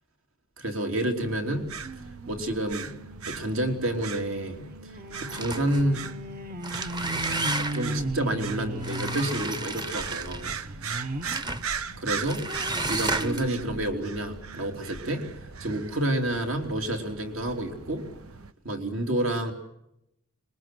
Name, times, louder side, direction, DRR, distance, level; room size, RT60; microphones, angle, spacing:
voice 1, 0.6-3.0 3.3-4.9 5.2-6.1 7.6-10.5 12.0-12.4 12.9-15.3 15.6-18.1 18.6-19.5, right 1 dB, 65° right, 3 dB, 3.4 m, -29 dB
sound 1, 1.2-18.5, right 6 dB, 90° right, 1.0 m, -39 dB
sound 2, 1.8-11.4 11.9-14.9 15.5-15.6 15.8-15.9, right 1 dB, 45° right, 1.1 m, -38 dB
sound 3, 5.3-5.9 6.5-8.0 8.8-10.6 11.2-11.7 12.2-13.6, right 2 dB, 20° right, 1.0 m, -32 dB
25.5 x 22.0 x 7.7 m, 0.81 s
head